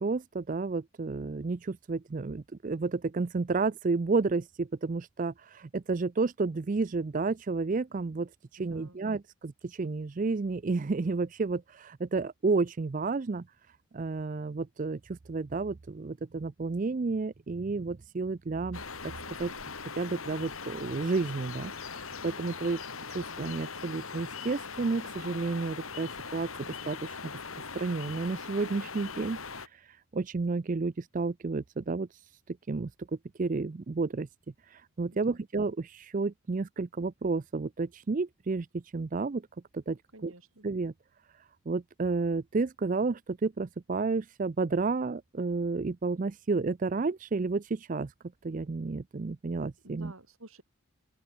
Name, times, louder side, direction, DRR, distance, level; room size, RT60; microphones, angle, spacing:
voice 1, 0.0-8.3 8.6-13.4 13.9-19.1 19.4-19.5 20.0-22.8 23.1-27.3 27.7-32.2 32.5-32.9 33.4-34.3 34.6-39.4 39.7-40.3 40.6-40.9 41.7-48.1 48.4-50.1, right 3 dB, 35° right, 0.4 m, -31 dB
voice 2, 8.6-9.1 35.1-35.4 40.1-40.7 49.8-50.6, right 1 dB, 75° right, 6.9 m, -51 dB
sound 1, 18.7-29.7, left 5 dB, 75° left, 3.0 m, -41 dB
open air
head